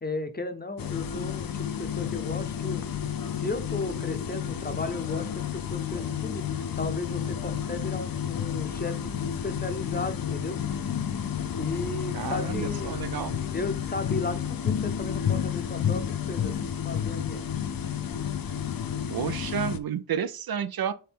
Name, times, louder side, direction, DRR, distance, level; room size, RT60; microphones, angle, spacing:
voice 1, 0.0-2.8 3.4-6.5 6.8-10.6 11.6-13.1 13.4-17.4, left 2 dB, 25° left, 0.7 m, -35 dB
sound 1, 0.8-19.8, left 8 dB, 60° left, 0.6 m, -31 dB
voice 2, 12.1-13.4 19.1-20.9, right 8 dB, 65° right, 0.5 m, -31 dB
4.4 x 3.2 x 3.6 m
cardioid pair, 55°, 40 cm